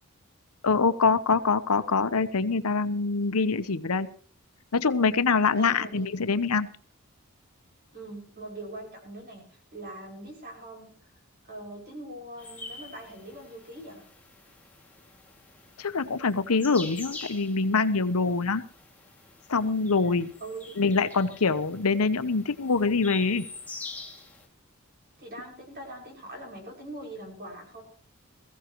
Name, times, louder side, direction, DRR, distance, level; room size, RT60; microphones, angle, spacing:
voice 1, 0.6-4.1 4.7-6.7 15.8-18.6 19.5-20.3 20.8-23.4, left 4 dB, 90° left, 12 dB, 0.9 m, -24 dB
voice 2, 5.6-6.1 7.9-9.4 9.7-10.9 11.5-14.0 20.4-20.8 25.2-27.8, right 1 dB, 45° right, 1 dB, 6.1 m, -42 dB
sound 1, 12.4-24.5, left 3 dB, 5° left, 2.4 m, -45 dB
22.0 x 15.0 x 3.1 m, 0.43 s
head